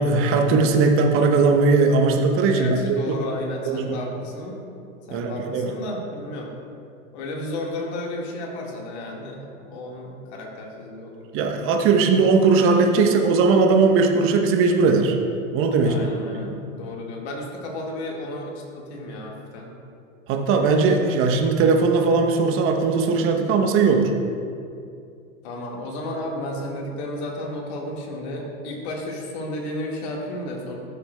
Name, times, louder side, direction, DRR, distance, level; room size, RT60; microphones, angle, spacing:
voice 1, 0.0-2.8 3.1-3.2 3.7-4.0 5.1-5.7 11.3-15.2 15.5-16.1 16.4-16.6 20.3-24.1, right 4 dB, 30° right, 3 dB, 0.8 m, -19 dB
voice 2, 2.5-4.6 5.1-6.5 7.1-11.2 15.8-19.7 25.4-30.7, left 1 dB, 55° left, -1 dB, 1.7 m, -33 dB
12.5 x 6.8 x 2.2 m, 2.5 s
figure-of-eight pair, 100°, 41 cm